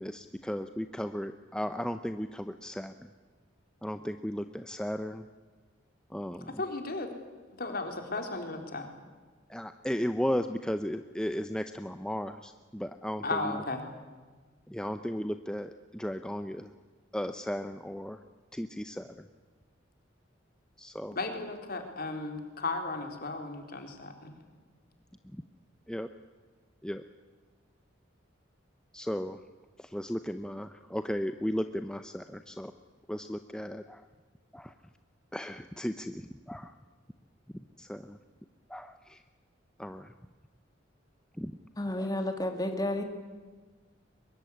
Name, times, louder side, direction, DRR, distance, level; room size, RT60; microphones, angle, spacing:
voice 1, 0.0-3.1 3.8-5.2 6.1-6.6 9.5-13.6 14.7-16.7 17.1-18.2 18.5-19.1 20.8-21.2 25.3-25.4 25.9-26.1 26.8-27.0 28.9-29.4 29.8-32.7 33.1-34.0 34.5-34.7 35.3-36.7 37.8-38.2 38.7-39.2 39.8-40.1 41.4-41.5 42.0-42.1, equal, 5° left, 8 dB, 0.7 m, -35 dB
voice 2, 6.6-7.1 7.6-8.9 13.2-13.8 21.2-24.4, left 3 dB, 50° left, 5 dB, 3.9 m, -35 dB
voice 3, 41.8-43.0, left 1 dB, 20° left, 5 dB, 2.3 m, -31 dB
23.5 x 22.0 x 9.8 m, 1.4 s
head